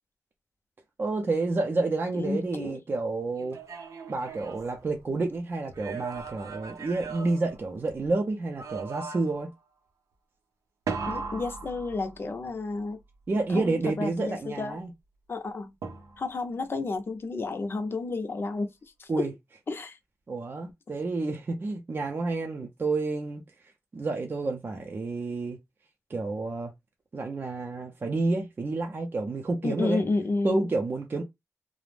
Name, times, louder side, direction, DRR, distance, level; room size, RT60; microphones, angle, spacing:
voice 1, 1.0-3.6 4.1-9.5 13.3-14.9 19.1-19.3 20.3-23.4 23.9-25.6 26.1-26.7 27.1-30.0 30.4-31.2, right 3 dB, 40° right, 0.5 m, -29 dB
voice 2, 2.1-2.8 11.1-13.0 13.5-14.8 15.3-15.7 16.2-18.7 19.0-19.3 19.7-20.0 29.6-30.6, left 3 dB, 45° left, 0.5 m, -31 dB
sound 1, 3.4-5.3 5.7-8.1 8.6-9.5 10.9-12.5 15.8-16.5, right 5 dB, 85° right, 0.6 m, -38 dB
2.4 x 2.0 x 3.2 m
wide cardioid pair, 120°, 6 cm